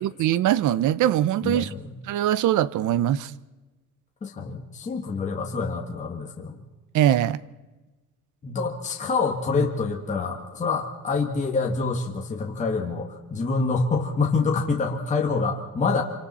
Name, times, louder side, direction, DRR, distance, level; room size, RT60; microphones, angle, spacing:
voice 1, 0.0-1.7 2.1-3.3 6.9-7.4, right 12 dB, 60° right, 0.8 m, -22 dB
voice 2, 1.4-2.0 4.2-6.6 8.4-16.0, left 4 dB, 20° left, 1.6 m, -26 dB
27.0 x 26.0 x 4.3 m
cardioid pair, 170°, 34 cm